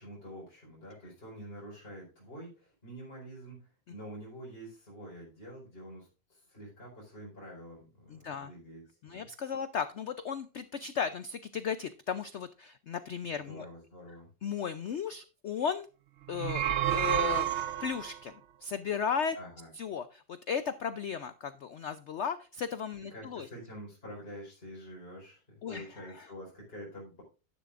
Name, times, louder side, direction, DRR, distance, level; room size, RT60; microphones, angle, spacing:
voice 1, 0.0-9.3 13.3-14.3 19.3-19.7 23.1-27.2, equal, 30° left, -5 dB, 4.7 m, -47 dB
voice 2, 8.1-8.5 9.0-13.7 14.4-15.9 16.3-18.3 18.6-19.4 19.8-23.5 25.6-25.9 26.2-26.3, left 7 dB, 80° left, 12 dB, 0.6 m, -35 dB
sound 1, 16.3-18.2, right 12 dB, 70° right, 0.6 m, -30 dB
11.5 x 10.5 x 2.5 m, 0.32 s
omnidirectional pair, 1.9 m